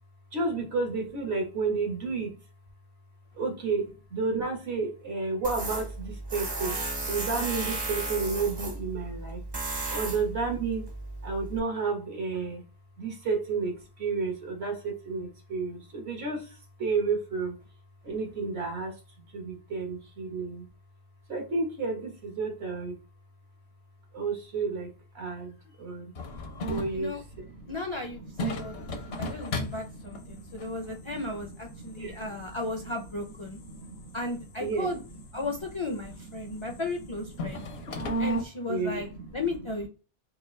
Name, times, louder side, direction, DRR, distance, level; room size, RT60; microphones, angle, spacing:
voice 1, 0.3-2.4 3.3-6.8 7.1-9.4 9.9-10.9 11.2-12.6 13.0-17.6 18.0-20.7 21.3-23.0 24.1-26.1 26.7-27.7 28.1-35.5 36.0-38.4 38.7-39.7, right 4 dB, 80° right, 2 dB, 1.4 m, -33 dB
Tools, 5.4-11.6, right 2 dB, 30° right, 0.5 m, -34 dB
sound 1, 26.2-38.4, equal, 75° left, 1.0 m, -37 dB
voice 2, 27.7-33.6 34.1-35.0 35.3-37.6 38.2-39.1 39.3-39.9, left 2 dB, 45° left, 1 dB, 0.4 m, -35 dB
3.7 x 2.4 x 3.1 m, 0.32 s
omnidirectional pair, 1.1 m